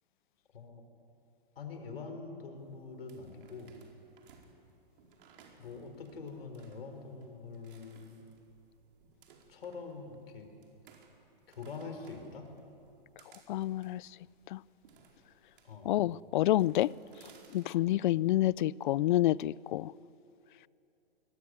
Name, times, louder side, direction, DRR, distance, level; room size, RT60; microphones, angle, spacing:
voice 1, 1.5-3.8 5.6-8.2 9.5-10.5 11.5-12.5 15.6-16.0, left 4 dB, 80° left, 5.1 m, -44 dB
sound 1, 2.6-18.3, right 5 dB, 60° right, 4.8 m, -62 dB
voice 2, 13.5-14.0 14.5-14.6 15.9-16.9 17.5-19.9, left 14 dB, 55° left, 0.5 m, -28 dB
27.0 x 21.5 x 9.7 m
hypercardioid pair, 130°, 29 cm